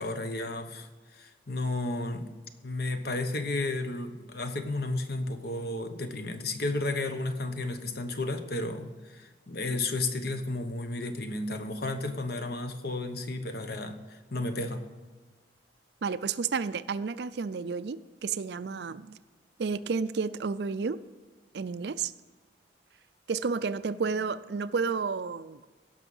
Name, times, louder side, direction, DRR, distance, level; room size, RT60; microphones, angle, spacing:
voice 1, 0.0-2.3 2.6-14.9, left 2 dB, 55° left, 7 dB, 1.0 m, -33 dB
voice 2, 16.0-19.2 19.6-21.0 21.5-22.1 23.3-25.7, right 5 dB, 60° right, 15 dB, 0.4 m, -31 dB
16.5 x 6.2 x 5.5 m, 1.3 s
head